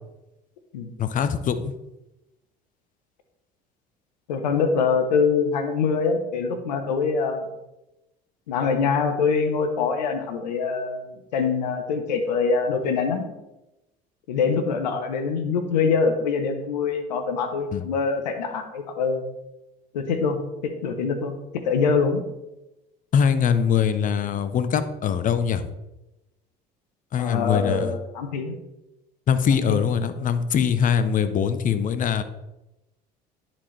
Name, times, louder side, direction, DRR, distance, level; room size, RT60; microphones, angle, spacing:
voice 1, 1.0-1.7 17.7-17.8 23.1-25.7 27.1-27.9 29.3-32.2, left 7 dB, 40° left, 12 dB, 0.7 m, -22 dB
voice 2, 4.3-7.5 8.5-13.3 14.3-19.2 19.9-20.4 20.8-21.3 21.6-22.2 27.2-28.5 29.5-29.8, left 5 dB, 85° left, 7 dB, 0.9 m, -24 dB
10.0 x 4.4 x 3.2 m, 0.96 s
hypercardioid pair, 70°, 21 cm